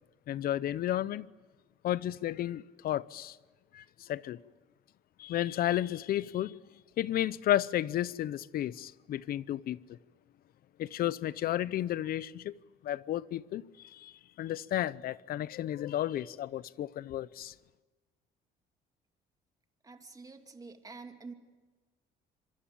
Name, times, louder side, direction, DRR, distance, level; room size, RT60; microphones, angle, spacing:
voice 1, 0.3-1.3 1.8-3.4 3.7-4.4 5.2-6.6 7.0-9.8 10.8-12.5 12.8-17.5, left 12 dB, 60° left, 0.8 m, -32 dB
voice 2, 19.8-21.3, right 4 dB, 20° right, 2.6 m, -47 dB
26.0 x 24.0 x 8.8 m
cardioid pair, 110°, 17 cm